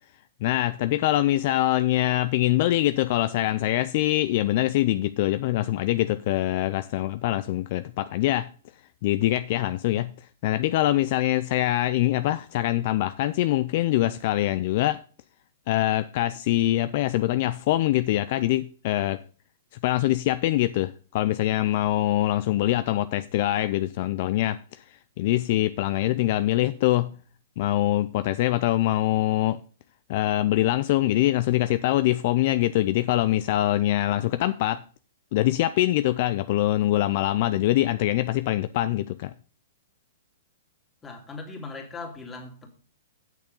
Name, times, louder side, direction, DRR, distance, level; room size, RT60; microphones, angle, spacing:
voice 1, 0.4-8.5 9.0-10.1 10.4-15.0 15.7-19.2 19.8-27.1 27.6-29.6 30.1-34.8 35.3-39.3, left 15 dB, 50° left, 0.4 m, -24 dB
voice 2, 41.0-42.7, left 3 dB, 15° left, 2.4 m, -39 dB
8.3 x 6.7 x 5.4 m
hypercardioid pair, 130°, 0 cm